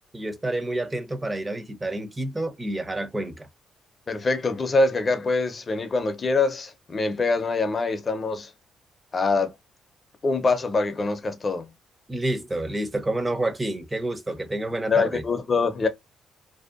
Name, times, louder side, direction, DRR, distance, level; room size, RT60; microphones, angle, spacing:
voice 1, 0.1-3.5 12.1-15.2, right 1 dB, 15° right, 0.5 m, -29 dB
voice 2, 4.1-8.5 9.1-9.5 10.2-11.7 14.9-15.9, left 3 dB, 35° left, 0.5 m, -24 dB
2.6 x 2.1 x 2.4 m
cardioid pair, 90°, 0 cm